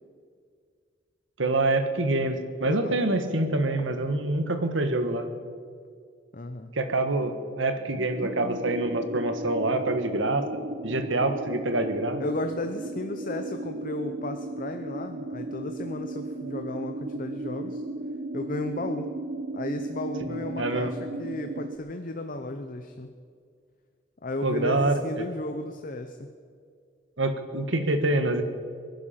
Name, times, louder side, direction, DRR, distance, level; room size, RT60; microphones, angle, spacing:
voice 1, 1.4-5.3 6.7-10.4 10.8-12.2 20.3-20.9 24.4-25.0 27.2-28.4, right 2 dB, 90° right, 8 dB, 1.5 m, -26 dB
voice 2, 2.6-3.0 6.3-6.7 11.1-11.2 12.2-17.8 18.3-19.1 19.5-23.1 24.2-26.3, left 1 dB, 45° left, 7 dB, 0.8 m, -34 dB
sound 1, 8.1-21.8, right 2 dB, 60° right, 1.0 m, -36 dB
23.0 x 11.0 x 5.8 m, 2.1 s
head